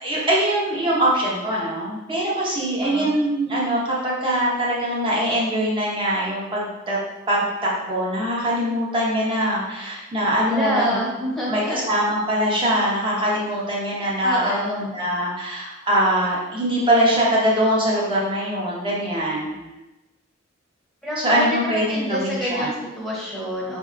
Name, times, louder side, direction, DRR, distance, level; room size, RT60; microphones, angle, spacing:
voice 1, 0.0-7.0 7.3-11.0 11.5-19.7 21.2-22.7, right 1 dB, 25° right, -5 dB, 0.8 m, -22 dB
voice 2, 2.8-3.1 10.5-11.8 14.2-14.9 19.4-19.5 21.0-23.8, equal, ahead, -6 dB, 0.9 m, -28 dB
3.9 x 2.7 x 2.5 m, 1.0 s
head